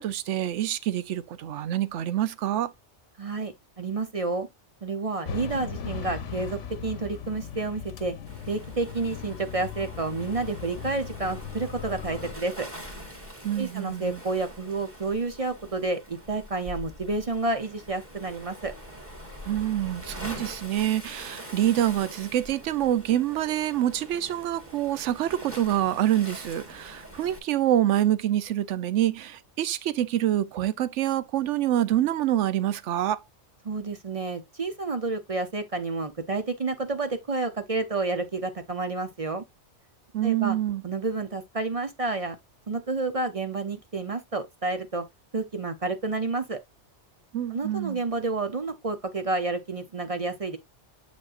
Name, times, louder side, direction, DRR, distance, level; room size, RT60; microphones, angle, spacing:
voice 1, 0.0-2.7 13.4-14.2 19.5-33.2 40.1-40.8 47.3-48.0, right 12 dB, 90° right, 1.0 m, -26 dB
voice 2, 3.2-4.5 4.8-8.1 8.5-12.7 13.6-18.7 33.6-39.4 40.2-40.6 40.8-42.4 42.7-45.0 45.3-46.6 47.5-50.6, right 3 dB, 35° right, 0.6 m, -30 dB
sound 1, 5.2-12.3, left 7 dB, 90° left, 1.2 m, -38 dB
Waves surf, 8.3-27.4, equal, 10° right, 2.0 m, -44 dB
7.3 x 5.2 x 2.5 m
omnidirectional pair, 1.2 m